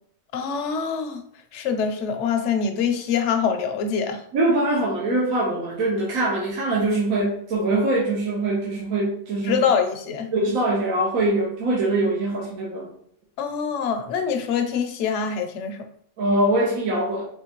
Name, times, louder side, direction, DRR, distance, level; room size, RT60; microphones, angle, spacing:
voice 1, 0.3-1.2 1.5-4.2 9.4-10.3 13.4-15.8, left 6 dB, 65° left, 6 dB, 0.9 m, -24 dB
voice 2, 4.3-9.6 10.3-12.9 16.2-17.3, right 2 dB, 75° right, -3 dB, 1.3 m, -23 dB
4.4 x 3.2 x 2.9 m, 0.64 s
omnidirectional pair, 1.5 m